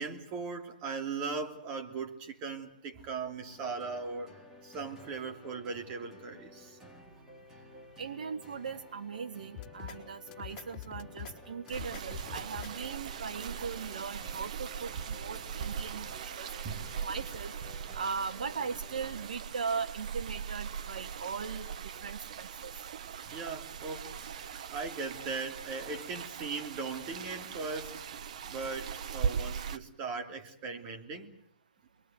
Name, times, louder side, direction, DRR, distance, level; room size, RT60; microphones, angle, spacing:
voice 1, 0.0-4.3 4.6-6.8 16.6-16.8 23.0-28.1 28.5-31.3, right 4 dB, 30° right, 3.2 m, -39 dB
sound 1, 3.5-19.3, left 1 dB, 10° right, 4.0 m, -53 dB
voice 2, 8.0-17.5 17.9-21.7 22.0-22.7, right 5 dB, 70° right, 1.6 m, -39 dB
sound 2, 9.5-10.0 10.3-11.3 11.7-12.7, left 10 dB, 25° left, 4.9 m, -44 dB
sound 3, 11.7-29.8, right 7 dB, 55° right, 1.4 m, -40 dB
28.5 x 22.5 x 8.0 m
hypercardioid pair, 140°, 5 cm